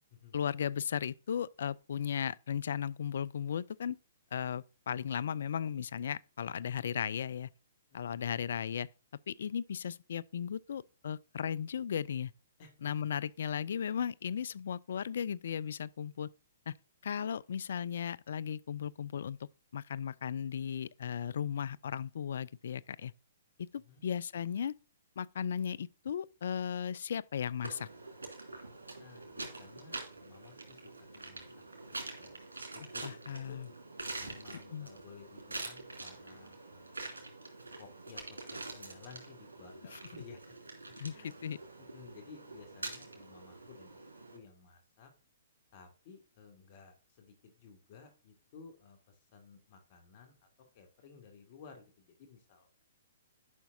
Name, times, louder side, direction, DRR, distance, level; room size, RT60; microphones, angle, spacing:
voice 1, 0.3-4.0 4.3-7.5 7.9-8.9 9.3-12.3 12.8-16.3 16.7-16.8 17.0-19.4 19.7-23.1 23.6-24.7 25.2-27.9 33.0-33.7 34.7-34.9 41.0-41.1 41.4-41.6, left 8 dB, 65° left, 0.3 m, -36 dB
voice 2, 23.7-24.1 29.0-32.4 32.7-33.6 34.1-37.2 37.8-40.4 41.1-41.4 41.8-44.0 44.3-45.1 45.7-50.4 50.7-52.8, left 5 dB, 45° left, 2.4 m, -56 dB
sound 1, 27.6-44.4, right 2 dB, 85° right, 2.6 m, -46 dB
11.0 x 5.7 x 2.7 m
figure-of-eight pair, 120°, 0 cm